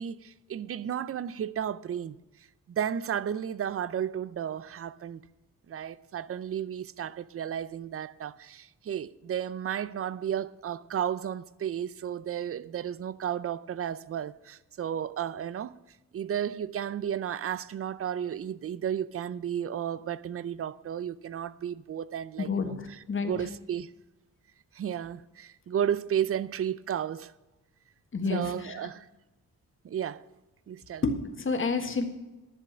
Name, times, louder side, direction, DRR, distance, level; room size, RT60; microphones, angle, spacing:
voice 1, 0.0-2.2 2.7-5.2 5.7-15.7 16.1-23.9 24.7-27.3 28.3-29.1 29.8-30.2 30.7-31.0, right 9 dB, 45° right, 0.5 m, -33 dB
voice 2, 22.4-23.3 28.1-28.8 31.0-32.0, left 4 dB, 40° left, 1.5 m, -30 dB
11.0 x 6.9 x 7.2 m
wide cardioid pair, 130°, 32 cm